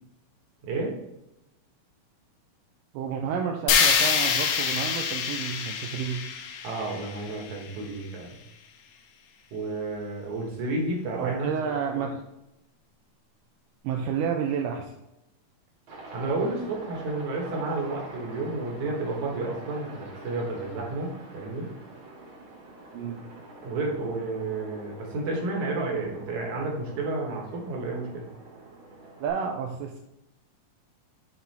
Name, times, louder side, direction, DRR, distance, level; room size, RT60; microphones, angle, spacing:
voice 1, 2.9-6.2 11.2-12.2 13.8-14.9 22.9-23.2 29.2-30.0, right 7 dB, 85° right, 2 dB, 2.2 m, -30 dB
sound 1, 3.7-7.8, left 6 dB, 75° left, 1.9 m, -26 dB
voice 2, 6.6-8.4 9.5-12.0 16.1-21.7 23.6-28.2, right 2 dB, 65° right, -1 dB, 2.7 m, -31 dB
Aircraft, 15.9-29.3, right 2 dB, 50° right, 1.9 m, -46 dB
7.7 x 4.1 x 4.2 m, 0.88 s
omnidirectional pair, 3.8 m